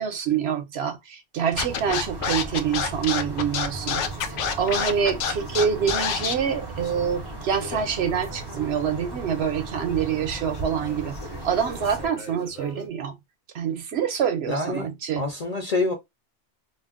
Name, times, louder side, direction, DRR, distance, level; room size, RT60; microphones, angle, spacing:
voice 1, 0.0-11.2 11.4-13.1 13.5-15.3, right 7 dB, 65° right, 0.8 m, -26 dB
sound 1, 1.5-12.1, right 2 dB, 35° right, 0.4 m, -36 dB
Scratching (performance technique), 1.6-6.3, left 7 dB, 90° left, 0.9 m, -26 dB
sound 2, 3.7-12.9, left 4 dB, 60° left, 0.9 m, -45 dB
voice 2, 14.5-14.9 15.2-15.9, left 3 dB, 45° left, 0.5 m, -26 dB
2.5 x 2.1 x 3.5 m
omnidirectional pair, 1.2 m